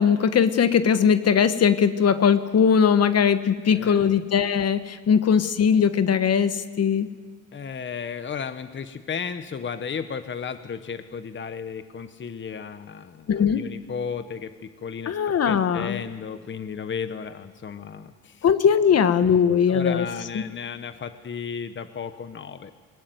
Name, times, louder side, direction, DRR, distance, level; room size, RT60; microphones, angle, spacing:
voice 1, 0.0-7.1 13.3-13.6 15.1-16.0 18.4-20.0 20.3-20.4, left 7 dB, 55° left, 11 dB, 1.3 m, -20 dB
voice 2, 3.7-4.2 7.5-18.5 19.7-22.7, left 6 dB, 40° left, 10 dB, 1.2 m, -34 dB
21.0 x 20.0 x 9.5 m, 1.5 s
cardioid pair, 90°, 30 cm